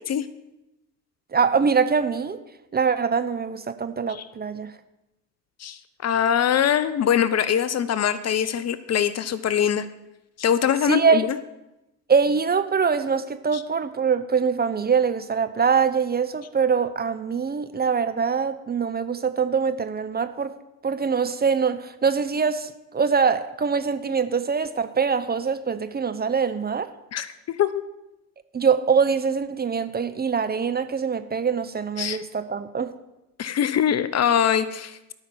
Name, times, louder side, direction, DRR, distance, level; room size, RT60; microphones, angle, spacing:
voice 1, 1.3-2.4 2.7-4.7 10.8-11.3 12.1-20.5 20.8-26.9 28.5-32.9, right 6 dB, 20° right, 10 dB, 0.7 m, -23 dB
voice 2, 5.6-9.9 10.4-11.3 13.5-13.6 27.1-27.8 32.0-32.2 33.4-35.1, left 9 dB, 35° left, 14 dB, 0.6 m, -23 dB
12.5 x 5.8 x 7.3 m, 0.93 s
hypercardioid pair, 65°, 48 cm